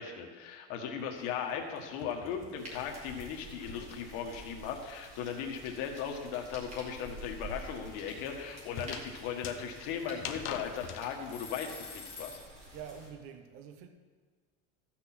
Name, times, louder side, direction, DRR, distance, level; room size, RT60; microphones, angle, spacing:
voice 1, 0.0-12.4, left 7 dB, 60° left, 1.7 m, -38 dB
sound 1, 1.2-4.9 5.2-11.1, left 8 dB, 40° left, 0.8 m, -46 dB
sound 2, 1.2-1.5 1.7-12.5, left 3 dB, 15° left, 1.6 m, -48 dB
sound 3, 2.6-13.1, right 1 dB, 20° right, 2.3 m, -49 dB
voice 2, 12.7-13.9, right 8 dB, 40° right, 0.8 m, -46 dB
14.0 x 6.2 x 6.1 m
cardioid pair, 175°, 33 cm